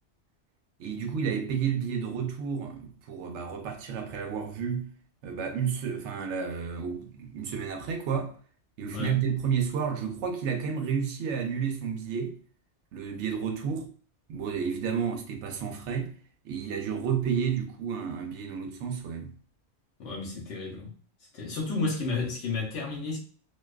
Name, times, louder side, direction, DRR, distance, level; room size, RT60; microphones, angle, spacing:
voice 1, 0.8-4.9 5.2-8.3 8.8-12.4 12.9-13.9 14.3-16.1 16.4-19.3, right 7 dB, 80° right, 0.9 m, -31 dB
voice 2, 20.0-20.9 21.3-23.2, left 3 dB, 85° left, 1.0 m, -32 dB
2.5 x 2.2 x 2.2 m
omnidirectional pair, 1.2 m